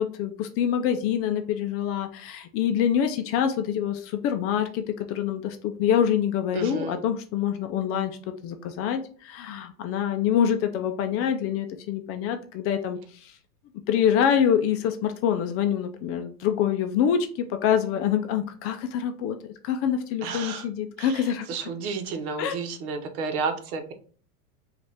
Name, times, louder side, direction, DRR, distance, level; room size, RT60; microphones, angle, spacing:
voice 1, 0.0-8.2 8.4-13.4 13.9-21.7 22.4-22.6, left 9 dB, 35° left, 7 dB, 0.4 m, -26 dB
voice 2, 6.5-7.0 20.2-20.7 21.0-23.9, right 5 dB, 75° right, 7 dB, 1.0 m, -32 dB
5.0 x 2.5 x 3.4 m, 0.44 s
supercardioid pair, 125°, 45 cm